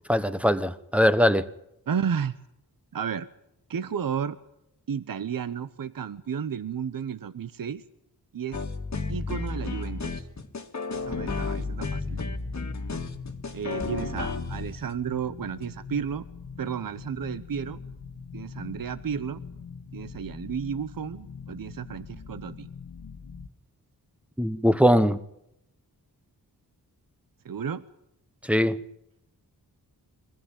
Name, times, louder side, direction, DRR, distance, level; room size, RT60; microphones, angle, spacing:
voice 1, 0.1-1.5 24.4-25.2 28.5-28.8, equal, 5° right, 12 dB, 1.0 m, -21 dB
voice 2, 1.9-2.3 2.9-3.3 3.7-4.4 4.9-7.8 8.3-8.6 9.1-10.3 10.9-12.2 13.5-16.3 16.6-17.8 18.3-19.4 19.9-22.7 27.4-27.8, right 7 dB, 60° right, 13 dB, 0.9 m, -32 dB
sound 1, 8.5-14.9 15.6-15.7, left 3 dB, 45° left, 1.8 m, -32 dB
sound 2, 10.9-23.5, left 5 dB, 65° left, 1.6 m, -43 dB
23.0 x 15.5 x 9.0 m, 0.83 s
wide cardioid pair, 90°, 39 cm